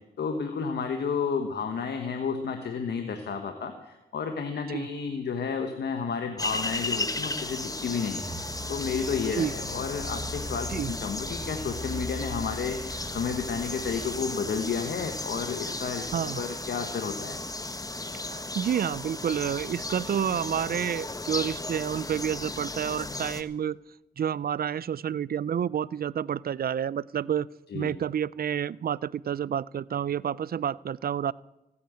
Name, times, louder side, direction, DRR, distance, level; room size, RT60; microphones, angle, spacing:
voice 1, 0.2-17.4 27.7-27.9, left 6 dB, 90° left, 5 dB, 1.2 m, -32 dB
sound 1, 6.4-23.4, left 2 dB, 20° left, 1.2 m, -35 dB
sound 2, 8.2-15.3, left 1 dB, 30° right, 2.0 m, -40 dB
voice 2, 18.3-23.8 24.2-27.5 27.7-31.3, right 9 dB, 65° right, 22 dB, 0.4 m, -29 dB
15.5 x 8.5 x 8.8 m, 0.99 s
cardioid pair, 45°, 17 cm